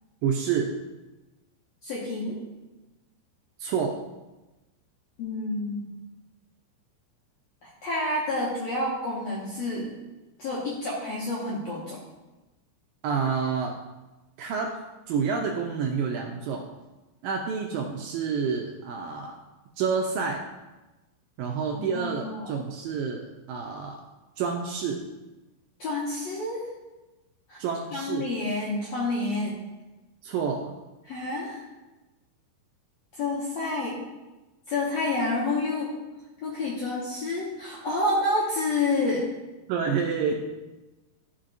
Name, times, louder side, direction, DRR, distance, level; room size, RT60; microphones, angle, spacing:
voice 1, 0.2-0.8 3.6-4.0 13.0-13.8 14.4-14.8 15.1-16.7 17.2-19.4 19.8-20.5 21.4-24.0 24.4-25.1 27.6-28.3 30.2-30.7 39.7-40.3, right 6 dB, 80° right, 2 dB, 2.0 m, -28 dB
voice 2, 1.8-2.4 5.2-5.9 7.6-9.9 10.4-12.0 21.7-22.5 25.8-26.6 27.5-27.6 27.9-29.6 31.1-31.6 33.1-34.0 34.7-35.9 36.4-39.3, left 2 dB, 70° left, -6 dB, 1.6 m, -29 dB
13.5 x 4.7 x 2.5 m, 1.1 s
omnidirectional pair, 4.4 m